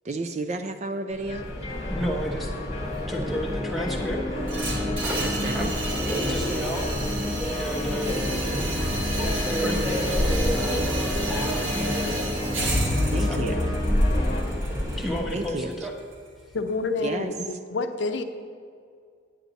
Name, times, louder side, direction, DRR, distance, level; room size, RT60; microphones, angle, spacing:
voice 1, 0.0-1.5 5.2-5.7 13.0-13.7 15.3-15.7 17.0-17.3, right 2 dB, 35° right, 8 dB, 0.4 m, -31 dB
Subway metro underground, 1.1-15.5, equal, 20° right, 1.3 m, -29 dB
sound 1, 1.3-14.4, left 2 dB, 30° left, 1.2 m, -33 dB
voice 2, 1.9-2.5 3.1-4.2 5.5-5.7 6.2-6.9 7.5-8.8 9.6-10.9 11.7-12.3 13.2-13.6 15.0-15.9, equal, ahead, 0 dB, 1.0 m, -32 dB
sound 2, 4.5-16.5, right 1 dB, 85° right, 1.6 m, -31 dB
voice 3, 16.5-18.2, left 3 dB, 70° left, 7 dB, 0.6 m, -28 dB
9.5 x 9.1 x 4.0 m, 2.2 s
head